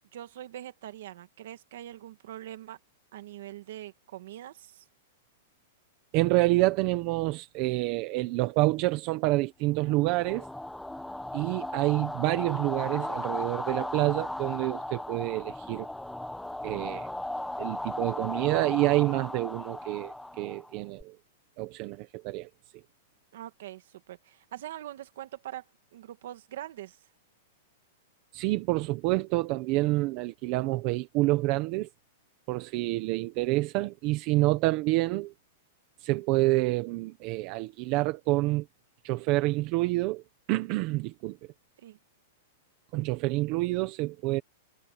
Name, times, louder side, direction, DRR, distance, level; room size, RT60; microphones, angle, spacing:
voice 1, 0.1-2.8 3.1-4.9 23.3-25.6 25.9-27.0 41.8-42.0, right 13 dB, 55° right, 1.8 m, -43 dB
voice 2, 6.1-10.5 11.3-15.9 16.6-17.1 17.6-21.2 21.6-22.5 28.3-31.9 32.5-35.3 36.0-38.6 39.0-40.2 40.5-41.4 42.9-44.4, right 20 dB, 30° right, 1.1 m, -28 dB
sound 1, 9.9-21.0, left 1 dB, ahead, 1.3 m, -36 dB
supercardioid pair, 180°, 0 cm